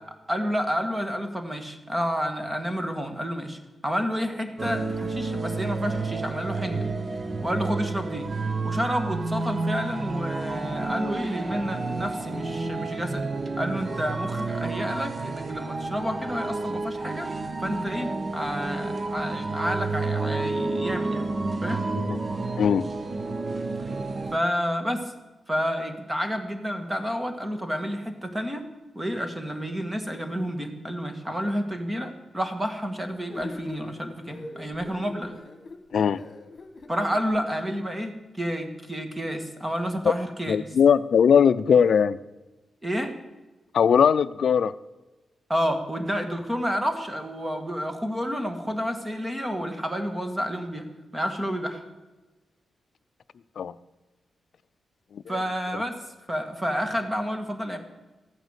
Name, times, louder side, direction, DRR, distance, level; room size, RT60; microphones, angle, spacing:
voice 1, 0.3-6.9 7.4-8.3 8.6-13.3 13.6-17.3 17.6-21.3 21.6-21.8 23.8-23.9 24.3-25.1 25.5-28.6 28.9-35.4 36.9-40.6 42.8-43.1 45.5-51.8 55.3-56.0 56.3-57.8, equal, 15° right, 6 dB, 1.7 m, -30 dB
sound 1, 4.6-24.4, right 3 dB, 30° right, 0.8 m, -30 dB
voice 2, 22.6-22.9 35.9-36.2 40.0-40.1 40.5-42.2 43.7-44.7 53.6-53.7 55.1-55.4, left 7 dB, 65° left, 12 dB, 0.5 m, -20 dB
sound 2, 33.3-37.4, left 3 dB, 45° left, 1.6 m, -42 dB
14.0 x 9.2 x 8.1 m, 1.1 s
wide cardioid pair, 135°, 0 cm